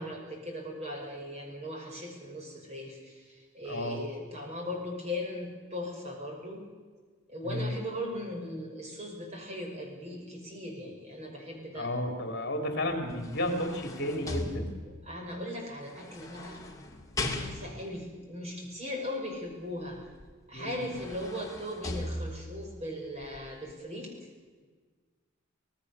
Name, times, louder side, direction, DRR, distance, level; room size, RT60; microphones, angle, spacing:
voice 1, 0.0-6.6 7.3-11.9 14.2-16.6 17.3-20.0 20.5-24.1, left 1 dB, 30° right, 0 dB, 5.6 m, -38 dB
voice 2, 3.7-4.0 7.4-7.7 11.7-14.7 20.5-20.8, left 1 dB, 55° left, 4 dB, 3.2 m, -32 dB
sound 1, 12.9-15.1 16.0-18.0 20.2-20.3 20.7-22.7 23.2-23.4, left 2 dB, 15° left, 2.3 m, -38 dB
25.5 x 18.5 x 6.9 m, 1.5 s
head